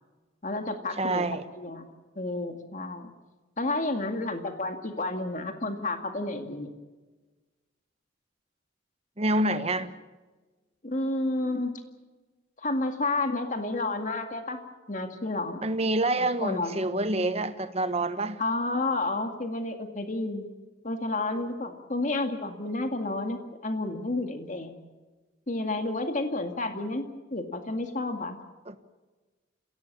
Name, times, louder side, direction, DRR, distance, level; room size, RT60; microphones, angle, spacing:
voice 1, 0.4-3.1 3.6-6.7 10.8-11.8 12.6-14.6 14.9-15.6 16.4-16.8 18.4-20.4 20.8-24.7 25.5-28.4, left 2 dB, 40° left, 2.1 m, -31 dB
voice 2, 1.0-1.4 9.2-9.9 15.6-18.4 28.7-28.8, right 2 dB, 35° right, 1.3 m, -27 dB
29.0 x 17.0 x 7.2 m
head